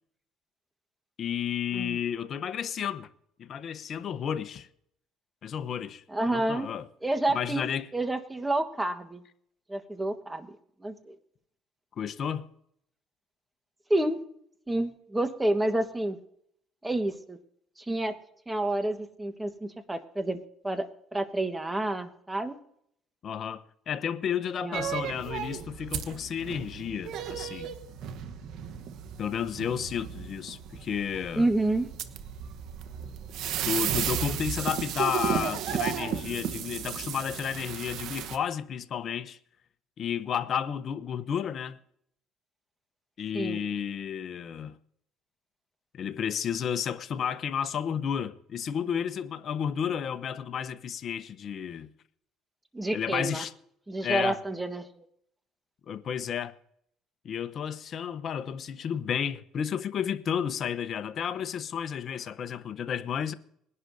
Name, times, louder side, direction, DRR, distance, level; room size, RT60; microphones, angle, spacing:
voice 1, 1.2-3.1 3.4-4.7 5.4-6.0 6.3-6.8 7.3-7.9 12.0-12.5 23.2-27.7 29.2-31.5 33.6-39.4 40.0-41.8 43.2-44.7 45.9-51.9 52.9-53.5 54.0-54.4 55.9-56.6 57.2-63.3, left 8 dB, 50° left, 0.9 m, -32 dB
voice 2, 6.1-6.7 7.0-7.7 7.9-9.2 9.7-10.5 10.8-11.1 13.9-14.2 14.7-16.2 16.8-17.4 17.8-18.1 18.5-20.4 20.6-22.6 24.6-25.0 31.3-31.9 43.3-43.6 52.7-53.4 53.9-55.0, right 1 dB, 10° right, 1.5 m, -29 dB
sound 1, 24.7-38.4, right 9 dB, 70° right, 1.2 m, -34 dB
21.0 x 11.0 x 2.8 m
supercardioid pair, 90°, 0 cm